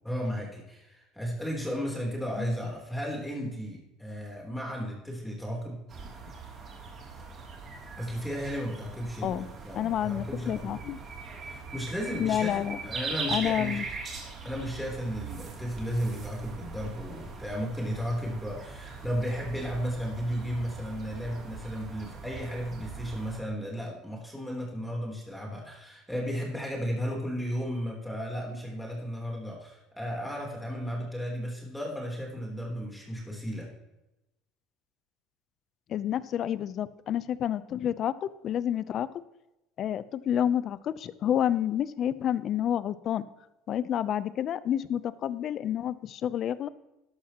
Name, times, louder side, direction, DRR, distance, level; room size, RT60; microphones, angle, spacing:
voice 1, 0.0-5.8 8.0-10.8 11.4-13.9 14.4-33.7, equal, 5° left, -2 dB, 3.6 m, -34 dB
sound 1, 5.9-23.4, right 4 dB, 35° right, 3.1 m, -41 dB
voice 2, 9.7-11.0 12.2-12.8 13.3-13.8 35.9-39.1 39.8-43.2 43.7-46.7, left 10 dB, 45° left, 16 dB, 0.7 m, -29 dB
13.5 x 12.0 x 3.0 m, 0.94 s
cardioid pair, 120°, 0 cm